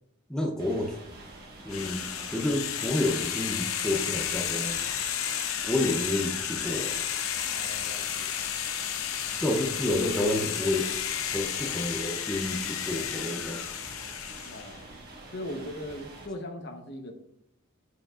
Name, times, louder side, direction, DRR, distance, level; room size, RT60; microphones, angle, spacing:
voice 1, 0.3-1.0 1.6-4.8 5.6-7.0 9.4-10.9 11.3-13.6, left 1 dB, 5° left, 0 dB, 0.6 m, -29 dB
sound 1, 0.6-16.3, right 2 dB, 50° right, 1.4 m, -47 dB
sound 2, 1.7-14.8, left 9 dB, 75° left, 0.7 m, -32 dB
voice 2, 7.5-8.3 9.3-9.5 14.4-14.8 15.3-17.2, left 1 dB, 50° left, 4 dB, 0.9 m, -39 dB
9.6 x 5.3 x 2.4 m, 0.76 s
head